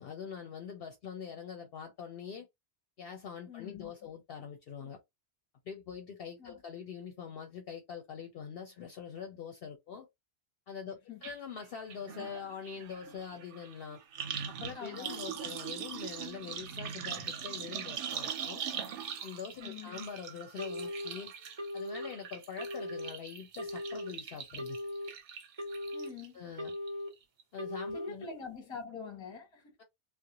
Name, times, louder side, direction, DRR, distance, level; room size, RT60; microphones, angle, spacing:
voice 1, 0.0-2.5 3.0-5.0 5.7-10.1 10.7-14.0 14.5-18.6 19.2-21.3 21.7-24.8 26.3-26.7 27.5-28.3, left 7 dB, 65° left, 0.7 m, -44 dB
voice 2, 3.5-3.9 6.4-6.6 11.1-11.2 14.7-15.4 19.6-20.1 25.9-26.4 27.9-29.7, left 5 dB, 30° left, 0.8 m, -45 dB
sound 1, 11.2-11.3 11.6-26.3 26.6-27.1 27.4-27.5, right 7 dB, 85° right, 0.9 m, -42 dB
Telephone, 20.6-21.1 21.6-22.1 22.6-23.1 23.6-24.1 24.6-25.1 25.6-26.1 26.6-27.1 27.6-28.1, left 1 dB, 25° right, 0.8 m, -38 dB
2.5 x 2.0 x 2.8 m
omnidirectional pair, 1.2 m